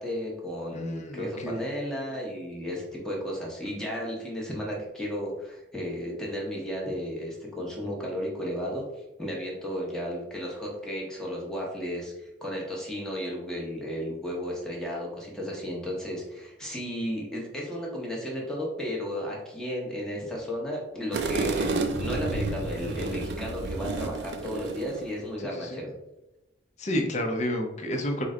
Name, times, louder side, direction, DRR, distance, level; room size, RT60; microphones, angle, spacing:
voice 1, 0.0-8.8 9.2-25.9, equal, 5° left, -3 dB, 0.9 m, -34 dB
voice 2, 0.7-1.6 25.6-25.8 26.8-28.2, left 1 dB, 40° left, 3 dB, 0.6 m, -30 dB
sound 1, 21.1-25.2, right 3 dB, 60° right, 0.4 m, -31 dB
4.6 x 2.1 x 3.7 m, 0.95 s
head